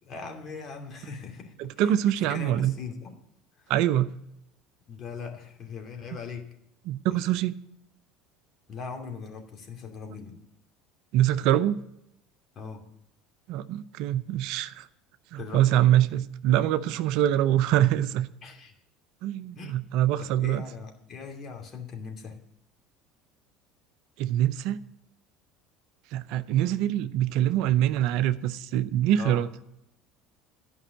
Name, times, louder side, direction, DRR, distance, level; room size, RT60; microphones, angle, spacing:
voice 1, 0.0-1.9 2.3-3.1 4.9-6.5 7.1-7.2 8.7-10.4 12.6-12.8 15.4-15.9 18.4-18.7 19.5-19.8 20.2-22.4 29.2-29.5, left 5 dB, 45° left, 2.5 m, -40 dB
voice 2, 1.6-2.7 3.7-4.1 6.9-7.5 11.1-11.8 13.5-14.9 15.3-18.3 19.2-20.6 24.2-24.8 26.1-29.5, right 12 dB, 65° right, 0.6 m, -24 dB
11.5 x 5.4 x 8.9 m
hypercardioid pair, 75°, 0 cm